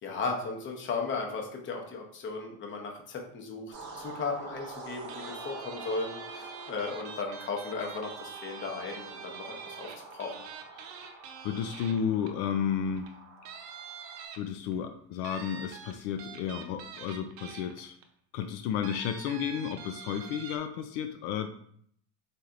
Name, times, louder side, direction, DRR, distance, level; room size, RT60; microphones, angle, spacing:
voice 1, 0.0-10.3, left 4 dB, 30° left, 2 dB, 0.8 m, -36 dB
sound 1, 3.7-14.3, right 3 dB, 40° right, 0.9 m, -47 dB
sound 2, 5.1-12.5 13.0-13.1 13.5-14.7 15.2-18.0 18.8-20.6, right 6 dB, 75° right, 0.7 m, -45 dB
voice 2, 11.4-13.1 14.4-18.0 18.3-21.5, left 8 dB, 75° left, 6 dB, 0.5 m, -32 dB
4.2 x 3.2 x 2.5 m, 0.64 s
cardioid pair, 140°, 37 cm